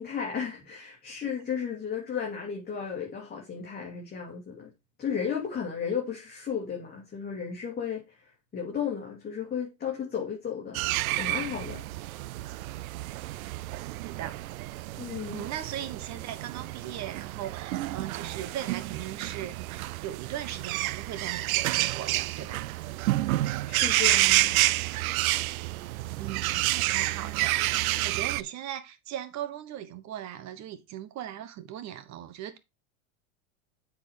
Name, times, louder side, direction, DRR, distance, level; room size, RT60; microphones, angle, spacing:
voice 1, 0.0-4.7 5.0-10.8 11.2-11.8 15.0-15.4 23.7-24.8, left 7 dB, 20° left, 2.6 m, -34 dB
sound 1, 10.7-28.4, right 17 dB, 85° right, 0.6 m, -29 dB
voice 2, 14.0-14.4 15.3-22.6 26.2-32.6, right 11 dB, 40° right, 1.4 m, -39 dB
8.3 x 4.9 x 4.9 m
supercardioid pair, 115°, 41 cm